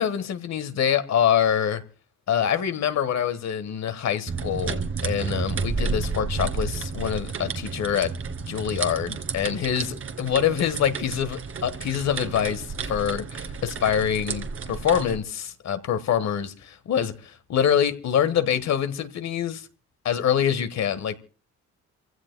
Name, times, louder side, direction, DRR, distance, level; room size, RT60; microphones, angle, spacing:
voice 1, 0.0-1.8 2.3-8.1 8.5-19.7 20.0-21.1, left 9 dB, 65° left, 1.4 m, -25 dB
sound 1, 4.3-15.2, right 4 dB, 45° right, 1.9 m, -31 dB
28.0 x 16.0 x 2.2 m
cardioid pair, 90°, 30 cm